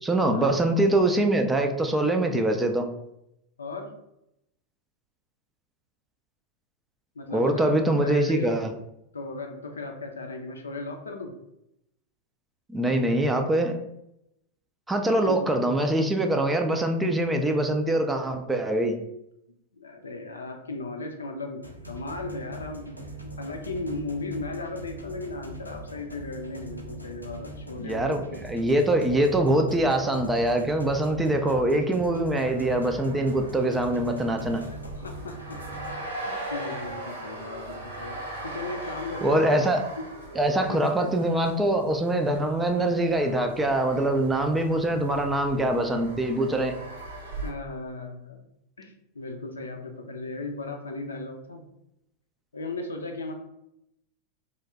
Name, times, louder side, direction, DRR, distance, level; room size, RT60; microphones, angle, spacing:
voice 1, 0.0-2.9 7.3-8.7 12.7-13.8 14.9-19.0 27.8-34.6 39.2-39.8 40.4-46.8, right 1 dB, 10° right, 5 dB, 0.4 m, -24 dB
voice 2, 3.6-3.9 7.2-8.6 9.1-11.4 15.1-15.4 19.7-28.6 34.6-35.6 36.1-39.6 40.0-40.1 40.7-41.1 47.4-48.4 48.8-51.7 52.5-53.3, left 3 dB, 75° left, 4 dB, 0.5 m, -36 dB
sound 1, 21.6-35.9, right 1 dB, 90° right, 0.4 m, -41 dB
sound 2, 32.3-47.5, right 1 dB, 70° right, 0.8 m, -40 dB
3.1 x 2.1 x 3.5 m, 0.82 s
figure-of-eight pair, 90°, 0 cm